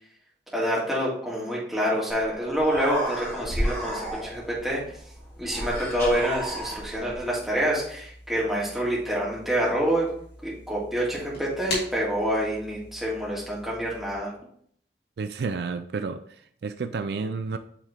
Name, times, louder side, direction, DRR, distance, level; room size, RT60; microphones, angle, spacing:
voice 1, 0.5-5.0 5.4-10.1 10.4-14.3, equal, ahead, -6 dB, 1.9 m, -27 dB
Human voice, 2.2-2.3 2.5-4.6 5.5-7.2, equal, 15° left, 1.8 m, -31 dB
sound 1, 4.0-14.2, left 1 dB, 75° left, 2.9 m, -43 dB
voice 2, 15.2-17.6, right 4 dB, 70° right, 9 dB, 0.4 m, -31 dB
8.1 x 3.6 x 3.6 m, 0.63 s
head